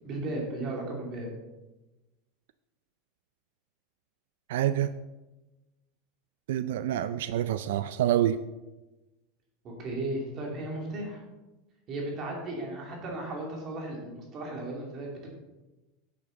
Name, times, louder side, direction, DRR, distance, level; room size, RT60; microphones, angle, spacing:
voice 1, 0.0-1.3 9.6-11.2 11.9-15.3, right 2 dB, 25° right, -1 dB, 2.6 m, -35 dB
voice 2, 4.5-4.9 6.5-8.4, right 12 dB, 85° right, 13 dB, 0.4 m, -27 dB
10.5 x 8.6 x 4.0 m, 1.1 s
supercardioid pair, 175°, 0 cm